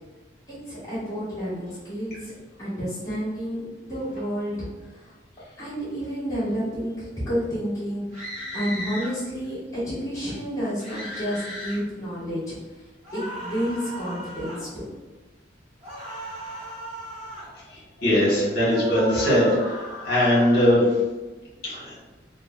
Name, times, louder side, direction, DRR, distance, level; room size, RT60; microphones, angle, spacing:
voice 1, 0.5-2.3 2.6-4.7 5.6-12.5 13.1-14.9, equal, 15° left, -11 dB, 1.1 m, -30 dB
sound 1, 8.1-9.1 10.8-11.8 13.0-14.6 15.8-17.5 18.6-20.8, equal, 35° right, 1.0 m, -36 dB
voice 2, 17.7-20.9 21.6-21.8, equal, 55° left, -9 dB, 1.1 m, -21 dB
3.2 x 2.0 x 2.2 m, 1.2 s
head